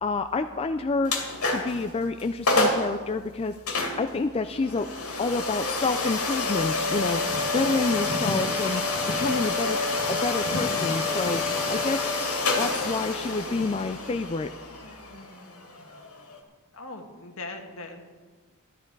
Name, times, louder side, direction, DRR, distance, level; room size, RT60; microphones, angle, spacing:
voice 1, 0.0-1.1 1.5-3.5 4.0-4.9 5.2-8.8 9.2-9.8 10.1-11.4 11.7-12.0 12.6-14.5, left 3 dB, 25° left, 8 dB, 0.4 m, -28 dB
sound 1, 1.0-1.8 2.2-2.3 2.5-2.9 3.7-16.4, left 3 dB, 85° left, 2.3 m, -28 dB
voice 2, 16.7-18.0, left 2 dB, 65° left, 4 dB, 1.6 m, -39 dB
13.5 x 12.0 x 4.6 m, 1.4 s
head